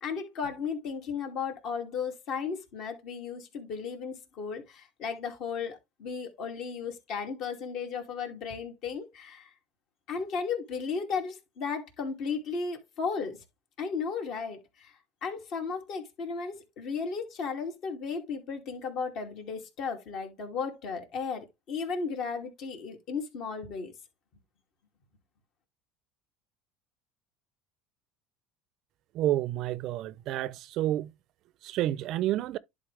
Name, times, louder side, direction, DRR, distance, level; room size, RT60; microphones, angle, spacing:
voice 1, 0.0-9.5 10.1-13.4 13.8-14.9 15.2-23.9, left 5 dB, 55° left, 2.5 m, -35 dB
voice 2, 29.2-31.1 31.6-32.6, right 13 dB, 55° right, 0.5 m, -29 dB
11.0 x 3.9 x 3.3 m
supercardioid pair, 110°, 0 cm